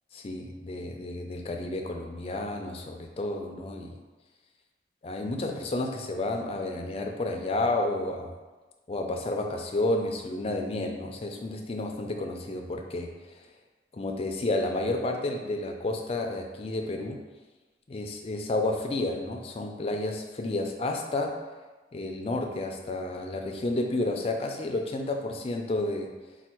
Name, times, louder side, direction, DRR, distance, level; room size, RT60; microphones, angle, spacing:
voice 1, 0.1-4.0 5.0-8.3 8.9-13.1 13.9-17.2 17.9-21.4 21.9-26.1, left 2 dB, 35° left, 3 dB, 0.4 m, -31 dB
4.4 x 2.3 x 4.4 m, 1.2 s
head